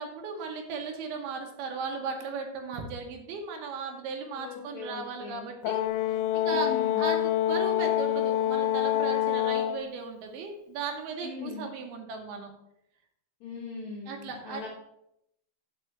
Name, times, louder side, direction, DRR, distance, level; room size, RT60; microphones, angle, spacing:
voice 1, 0.0-5.8 6.1-6.7 7.0-7.2 7.5-12.5 14.1-14.6, right 4 dB, 75° right, 3 dB, 2.5 m, -36 dB
voice 2, 4.4-5.5 6.5-7.1 11.2-11.7 13.4-14.7, left 5 dB, 75° left, -4 dB, 1.7 m, -40 dB
Brass instrument, 5.6-9.9, left 12 dB, 90° left, 2.9 m, -26 dB
6.1 x 5.4 x 6.8 m, 0.80 s
omnidirectional pair, 5.3 m